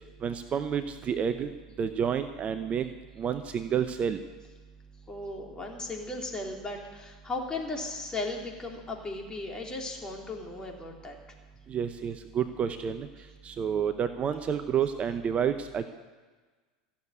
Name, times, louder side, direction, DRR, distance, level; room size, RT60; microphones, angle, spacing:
voice 1, 0.2-1.5 1.8-2.9 3.2-4.2 11.7-13.1 13.4-15.8, right 8 dB, 35° right, 9 dB, 0.7 m, -29 dB
voice 2, 5.1-11.2, left 2 dB, 20° left, 0 dB, 3.2 m, -36 dB
14.5 x 7.3 x 9.7 m, 1.4 s
hypercardioid pair, 90°, 4 cm